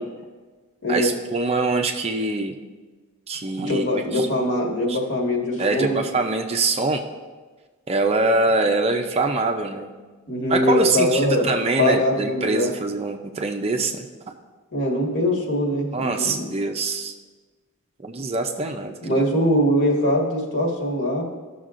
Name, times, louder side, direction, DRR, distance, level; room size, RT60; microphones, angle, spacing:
voice 1, 0.9-2.5 3.3-4.3 4.9-5.0 5.6-7.0 7.9-9.9 10.5-14.3 15.9-17.1 18.0-19.2, right 3 dB, 25° right, 4 dB, 0.4 m, -24 dB
voice 2, 3.6-6.0 10.3-11.5 11.8-12.7 14.7-16.4 19.0-21.2, left 1 dB, 55° left, -1 dB, 1.6 m, -22 dB
16.0 x 6.3 x 2.5 m, 1.4 s
head